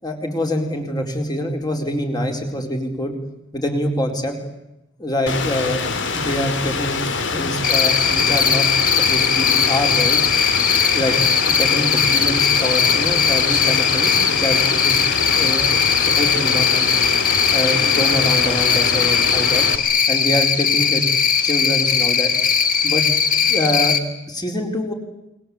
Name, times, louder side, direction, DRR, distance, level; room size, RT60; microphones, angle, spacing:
voice 1, 0.0-3.1 3.5-4.4 5.0-5.8 6.1-7.0 7.3-8.7 8.9-10.2 10.7-16.9 17.5-19.6 20.1-21.0 21.4-22.3 22.8-23.0 23.5-24.0 24.3-24.9, equal, 20° left, 3 dB, 4.5 m, -25 dB
Rain, 5.3-19.8, left 4 dB, 65° left, 2.6 m, -25 dB
Cricket, 7.6-24.0, left 7 dB, 45° left, 2.1 m, -19 dB
29.0 x 23.0 x 8.7 m, 0.90 s
head